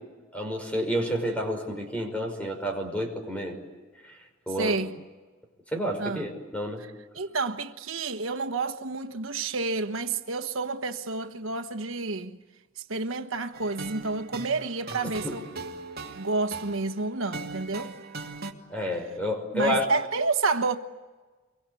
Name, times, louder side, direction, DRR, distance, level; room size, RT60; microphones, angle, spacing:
voice 1, 0.3-3.6 4.0-4.2 4.5-4.8 5.7-6.8 15.2-15.3 18.7-19.8, equal, 5° left, 5.7 m, -29 dB
voice 2, 4.6-5.0 6.0-6.3 7.1-12.4 12.8-15.5 16.1-18.0 19.5-20.8, right 3 dB, 90° right, 1.3 m, -29 dB
sound 1, 13.5-18.5, right 3 dB, 50° right, 2.6 m, -40 dB
29.0 x 24.0 x 8.4 m
head